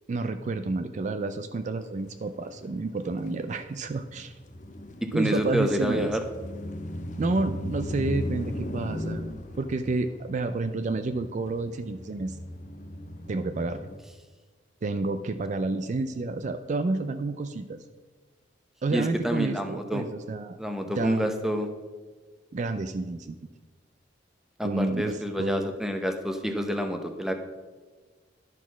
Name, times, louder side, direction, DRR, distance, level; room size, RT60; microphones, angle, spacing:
voice 1, 0.1-4.3 5.1-6.2 7.2-9.2 9.6-12.4 13.3-13.8 14.8-17.8 18.8-20.6 20.9-21.3 22.5-23.4 24.6-25.7, right 3 dB, 40° right, 9 dB, 0.4 m, -30 dB
sound 1, 1.9-2.3 2.6-14.0, left 1 dB, 45° left, 0.6 m, -37 dB
voice 2, 5.0-6.2 18.9-20.0 20.6-21.7 24.6-27.3, equal, ahead, 5 dB, 0.7 m, -28 dB
11.0 x 4.2 x 5.9 m, 1.3 s
head